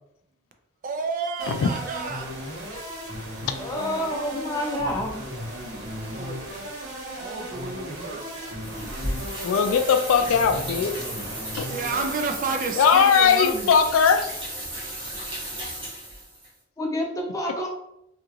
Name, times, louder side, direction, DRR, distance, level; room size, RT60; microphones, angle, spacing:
voice 1, 0.8-2.4 6.1-6.4 7.2-9.2 10.8-11.0 11.7-13.7, right 4 dB, 40° right, 5 dB, 0.3 m, -31 dB
sound 1, 1.4-12.3, equal, 85° right, 1.2 m, -36 dB
voice 2, 3.6-5.2 16.8-17.7, left 1 dB, 15° left, -1 dB, 0.5 m, -28 dB
sound 2, 8.6-16.5, right 1 dB, 25° right, 1.2 m, -34 dB
voice 3, 9.4-11.0 11.6-11.7 12.8-14.2, left 6 dB, 80° left, 7 dB, 0.3 m, -19 dB
2.8 x 2.4 x 3.0 m, 0.81 s
head